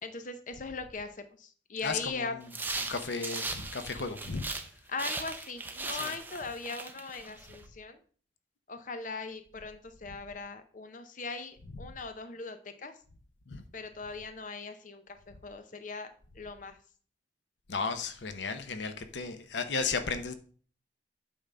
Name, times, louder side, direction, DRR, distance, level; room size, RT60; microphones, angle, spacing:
voice 1, 0.0-1.1 1.7-2.3 4.9-8.0 8.7-12.9 13.7-15.0 15.4-16.1 16.4-16.8, left 4 dB, 45° left, 0.7 m, -39 dB
voice 2, 1.8-4.5 6.0-6.1 11.7-11.9 13.5-13.6 17.7-20.3, left 4 dB, 90° left, 0.8 m, -35 dB
sound 1, 2.5-4.7 5.0-7.6, right 3 dB, 10° right, 0.7 m, -38 dB
8.7 x 3.8 x 5.5 m
head